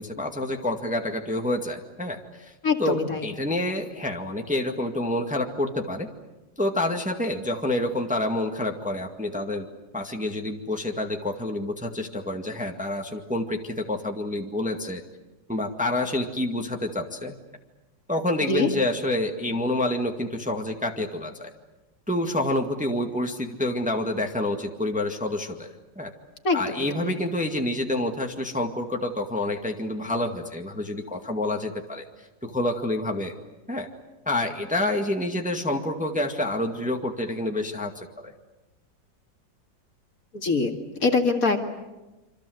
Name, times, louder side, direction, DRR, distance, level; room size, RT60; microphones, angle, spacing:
voice 1, 0.0-2.5 2.8-3.0 3.2-6.1 6.6-9.7 9.9-15.0 15.5-17.3 18.1-21.5 22.1-26.1 26.5-32.0 32.4-33.3 33.7-33.9 34.3-38.3, left 1 dB, 5° right, 3 dB, 1.8 m, -28 dB
voice 2, 2.6-3.3 18.4-18.7 26.4-27.1 40.3-40.7 41.0-41.6, left 3 dB, 50° left, 4 dB, 2.5 m, -24 dB
27.5 x 25.5 x 8.0 m, 1.1 s
omnidirectional pair, 2.0 m